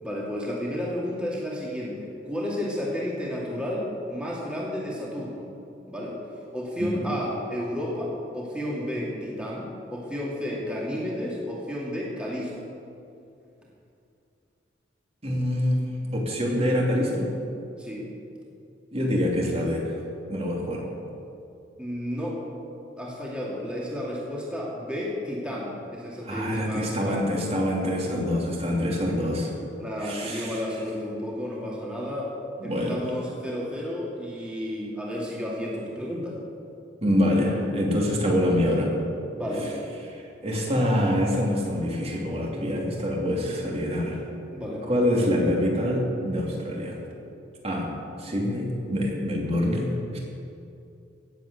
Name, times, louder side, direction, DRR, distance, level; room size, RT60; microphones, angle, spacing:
voice 1, 0.0-5.5 5.9-6.2 6.5-12.7 17.8-18.1 21.8-22.4 23.0-27.4 29.8-32.3 32.6-36.4 39.4-39.8 44.5-44.8 45.1-45.3, equal, 5° right, -5 dB, 2.4 m, -32 dB
voice 2, 15.2-15.9 16.1-17.3 18.9-19.8 20.3-20.8 26.2-29.5 30.0-30.6 32.6-33.0 37.0-38.9 40.4-44.2 44.9-47.0 47.6-47.9 48.2-50.2, equal, 35° right, -2 dB, 2.9 m, -25 dB
18.0 x 7.9 x 8.1 m, 2.6 s
head